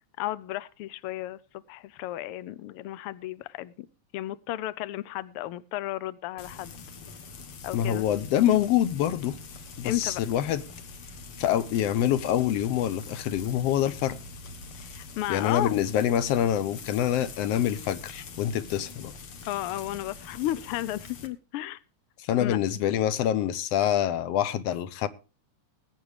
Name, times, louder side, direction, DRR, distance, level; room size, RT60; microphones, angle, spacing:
voice 1, 0.2-1.4 1.7-3.7 4.1-6.8 7.6-8.0 9.8-10.2 14.8-15.8 19.4-21.8 22.4-22.6, left 14 dB, 85° left, 1.2 m, -33 dB
Frying (food), 6.4-21.3, left 4 dB, 55° left, 2.0 m, -44 dB
voice 2, 7.7-9.4 9.8-10.6 11.4-14.2 15.3-19.1 22.2-25.1, left 10 dB, 70° left, 1.7 m, -26 dB
20.5 x 8.8 x 3.3 m
omnidirectional pair, 3.4 m